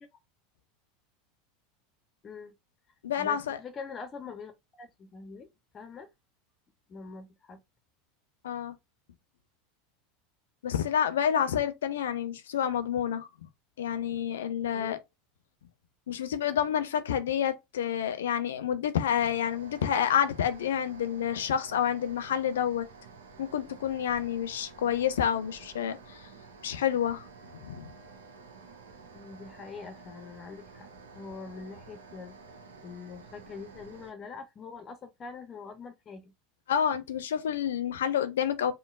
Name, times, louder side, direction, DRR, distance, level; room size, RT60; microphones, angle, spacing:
voice 1, 2.2-2.5 3.2-5.5 5.7-6.1 6.9-7.6 14.7-15.0 29.1-30.9 31.1-32.4 32.8-36.3, left 5 dB, 30° left, 0.7 m, -44 dB
voice 2, 3.0-3.6 8.4-8.8 10.6-13.3 13.8-15.0 16.1-22.9 23.4-26.3 26.6-27.3 27.6-27.9 36.7-38.7, left 9 dB, 65° left, 0.6 m, -29 dB
sound 1, 19.0-34.1, right 4 dB, 70° right, 0.9 m, -51 dB
5.4 x 2.1 x 2.4 m
figure-of-eight pair, 80°, 0 cm